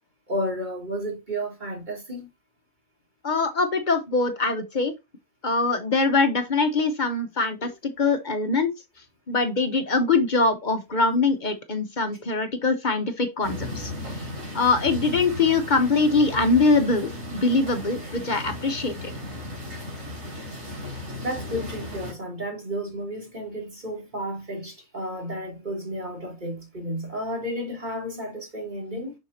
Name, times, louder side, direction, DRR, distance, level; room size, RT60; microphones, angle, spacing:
voice 1, 0.3-2.3 21.2-29.1, equal, 35° right, 2.8 m, -32 dB
voice 2, 3.2-4.9 5.4-8.7 9.3-14.3 14.5-19.1, left 3 dB, 40° left, 0.9 m, -23 dB
sound 1, 13.4-22.1, left 1 dB, 80° right, 3.7 m, -36 dB
7.1 x 5.7 x 2.7 m
omnidirectional pair, 1.3 m